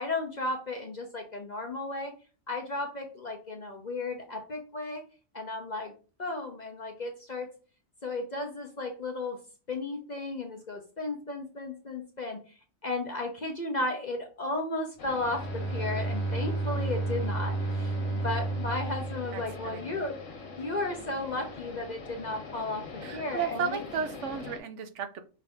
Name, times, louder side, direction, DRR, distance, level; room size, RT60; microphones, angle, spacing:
voice 1, 0.0-2.2 2.5-5.0 5.3-5.9 6.2-7.5 8.0-9.4 9.7-12.6 12.8-20.2 20.6-23.8, left 2 dB, 45° left, 3 dB, 0.7 m, -34 dB
sound 1, 15.0-24.6, left 4 dB, 75° left, 1.4 m, -43 dB
Bowed string instrument, 15.2-20.1, right 2 dB, 15° left, 0.8 m, -32 dB
voice 2, 19.3-20.0 23.0-25.2, right 6 dB, 70° right, 9 dB, 0.8 m, -34 dB
5.5 x 2.6 x 3.5 m, 0.36 s
omnidirectional pair, 1.4 m